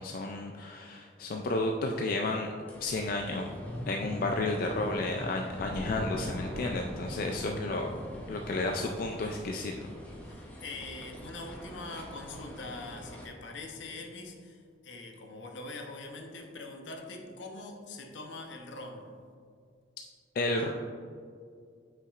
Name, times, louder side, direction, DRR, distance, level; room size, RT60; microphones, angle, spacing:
voice 1, 0.0-2.5 2.8-3.5 3.9-7.9 8.3-9.7 20.4-20.7, left 2 dB, 50° left, 2 dB, 0.3 m, -32 dB
sound 1, 2.7-13.3, equal, 10° left, 0.7 m, -42 dB
voice 2, 10.2-19.1, left 2 dB, 75° left, 3 dB, 0.8 m, -43 dB
8.1 x 5.7 x 2.4 m, 2.2 s
head